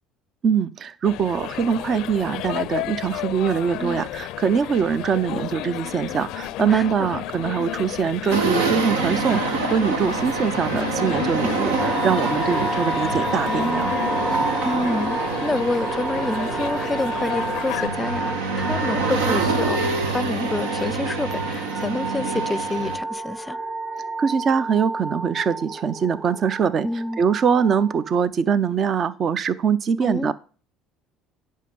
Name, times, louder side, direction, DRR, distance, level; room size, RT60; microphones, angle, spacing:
voice 1, 0.4-13.9 24.2-26.9 27.2-30.3, right 7 dB, 45° right, 0.6 m, -23 dB
sound 1, 1.0-17.9, left 15 dB, 70° left, 0.4 m, -32 dB
voice 2, 6.7-7.1 14.6-19.8 20.1-23.6 26.8-27.2 30.0-30.3, left 2 dB, 15° left, 0.5 m, -28 dB
sound 2, 8.3-23.0, right 4 dB, 90° right, 1.5 m, -26 dB
sound 3, 11.8-28.2, right 2 dB, 15° right, 1.8 m, -30 dB
10.5 x 5.6 x 5.3 m
supercardioid pair, 80°, 0 cm